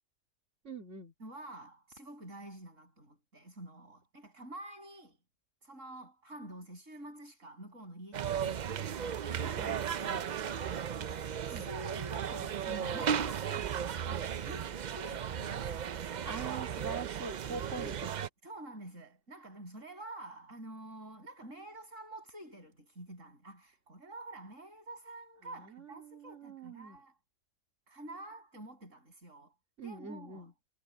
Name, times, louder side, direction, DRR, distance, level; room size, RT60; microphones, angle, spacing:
voice 1, 0.6-1.1 9.6-9.8 11.5-11.7 16.2-18.1 25.4-27.0 29.8-30.5, right 4 dB, 70° right, 3.2 m, -43 dB
voice 2, 1.2-5.2 5.6-10.9 11.2-15.9 17.8-17.9 18.4-27.2 27.9-29.5 29.8-30.5, right 1 dB, 90° right, 7.8 m, -48 dB
sound 1, 8.1-18.3, right 8 dB, 50° right, 0.5 m, -35 dB
omnidirectional pair, 1.3 m